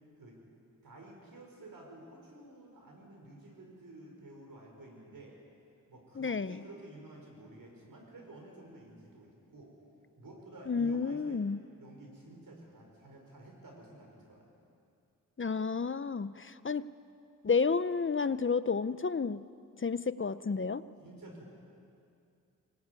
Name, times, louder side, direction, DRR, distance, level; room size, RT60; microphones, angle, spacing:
voice 1, 0.8-5.4 5.9-9.7 10.2-11.4 11.8-14.5 21.0-21.5, right 2 dB, 85° right, 0 dB, 5.5 m, -51 dB
voice 2, 6.2-6.6 10.7-11.6 15.4-16.9 17.4-19.4 19.8-20.8, left 5 dB, 40° left, 14 dB, 0.7 m, -31 dB
25.0 x 19.5 x 9.6 m, 2.5 s
wide cardioid pair, 65°, 33 cm